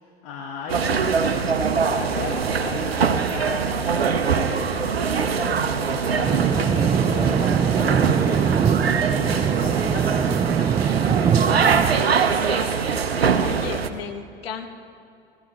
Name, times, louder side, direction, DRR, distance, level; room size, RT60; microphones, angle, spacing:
voice 1, 0.0-11.7, left 5 dB, 50° left, -1 dB, 1.9 m, -37 dB
sound 1, 0.7-13.9, right 6 dB, 90° right, 0.8 m, -23 dB
sound 2, 6.2-11.9, right 7 dB, 15° right, 0.3 m, -22 dB
voice 2, 13.4-14.7, left 7 dB, 75° left, 6 dB, 1.2 m, -34 dB
18.5 x 14.0 x 3.2 m, 2.5 s
hypercardioid pair, 80°, 30 cm